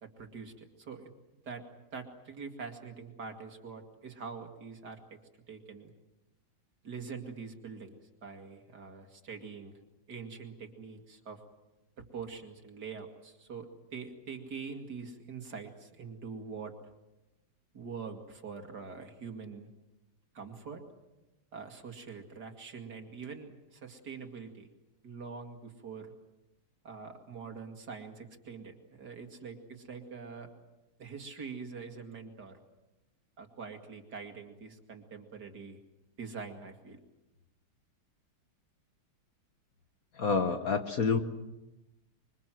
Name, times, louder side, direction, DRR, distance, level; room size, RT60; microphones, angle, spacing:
voice 1, 0.0-1.1 1.4-1.6 1.9-5.2 5.5-5.9 6.8-9.7 10.1-11.4 12.0-16.7 17.7-19.7 20.3-20.8 21.5-24.7 25.0-26.1 26.8-30.5 31.0-32.6 33.4-35.8 36.2-37.0, right 5 dB, 50° right, 5 dB, 2.8 m, -44 dB
voice 2, 40.1-41.2, left 5 dB, 50° left, 7 dB, 1.6 m, -28 dB
26.0 x 24.0 x 7.7 m, 1.0 s
omnidirectional pair, 2.2 m